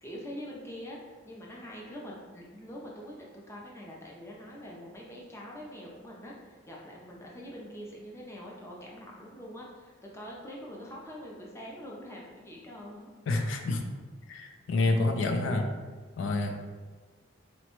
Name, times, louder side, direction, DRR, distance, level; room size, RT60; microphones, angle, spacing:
voice 1, 0.0-13.1, equal, 15° left, -3 dB, 0.5 m, -44 dB
voice 2, 13.3-13.8 14.3-15.7 16.2-16.6, left 2 dB, 75° left, 4 dB, 0.4 m, -28 dB
3.9 x 2.2 x 3.0 m, 1.4 s
head